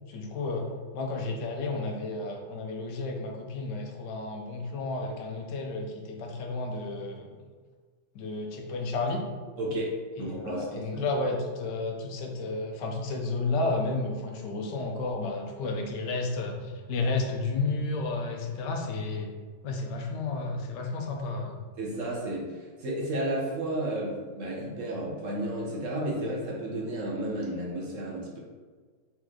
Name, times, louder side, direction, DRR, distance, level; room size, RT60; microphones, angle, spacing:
voice 1, 0.1-0.7 0.9-7.3 8.1-9.2 10.4-19.3 19.6-21.6, left 3 dB, 75° left, 2 dB, 1.3 m, -32 dB
voice 2, 9.6-11.0 21.8-28.4, right 1 dB, 55° right, -3 dB, 1.1 m, -32 dB
4.2 x 3.1 x 3.7 m, 1.5 s
omnidirectional pair, 1.9 m